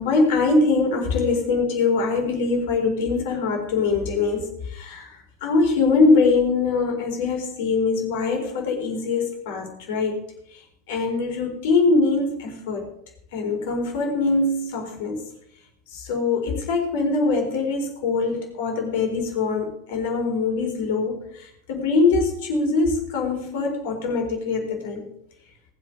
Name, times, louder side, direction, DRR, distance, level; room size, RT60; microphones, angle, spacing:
voice 1, 0.0-5.1 5.4-10.2 10.9-12.9 13.3-15.2 15.9-25.1, left 3 dB, 60° left, 2 dB, 4.2 m, -23 dB
19.0 x 8.1 x 5.3 m, 0.73 s
figure-of-eight pair, 75°, 0 cm